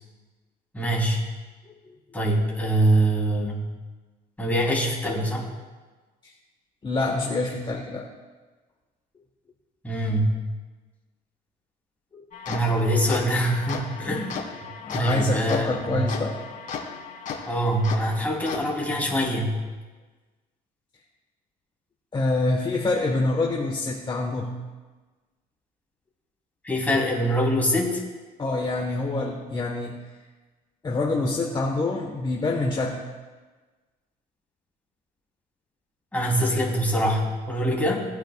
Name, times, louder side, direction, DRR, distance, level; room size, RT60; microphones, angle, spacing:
voice 1, 0.7-1.2 2.1-3.7 4.4-5.5 9.8-10.3 12.5-14.3 14.9-16.1 17.5-19.6 26.6-28.0 36.1-38.0, right 1 dB, 10° left, -3 dB, 3.3 m, -24 dB
voice 2, 6.8-8.0 14.8-16.4 22.1-24.5 28.4-29.9 30.8-33.0, left 2 dB, 25° left, -1 dB, 1.4 m, -26 dB
sound 1, 12.3-18.6, left 5 dB, 50° left, 2.2 m, -36 dB
19.0 x 9.0 x 2.4 m, 1.3 s
cardioid pair, 110°, 17 cm